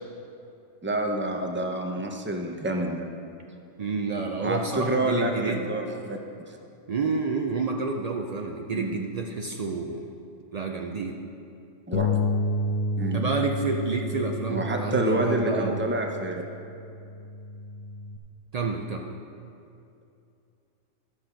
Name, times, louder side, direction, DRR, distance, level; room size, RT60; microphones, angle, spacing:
voice 1, 0.8-3.1 4.4-6.2 6.5-6.6 8.7-9.0 11.9-12.1 13.0-13.3 14.5-16.3, right 1 dB, 15° right, 2 dB, 0.5 m, -28 dB
voice 2, 3.8-5.6 6.9-10.0 10.5-11.2 13.1-15.8 18.5-19.1, right 4 dB, 85° right, 2 dB, 0.3 m, -29 dB
Bass guitar, 11.9-18.2, left 2 dB, 60° left, 0.8 m, -31 dB
13.0 x 6.1 x 5.0 m, 2.6 s
omnidirectional pair, 1.4 m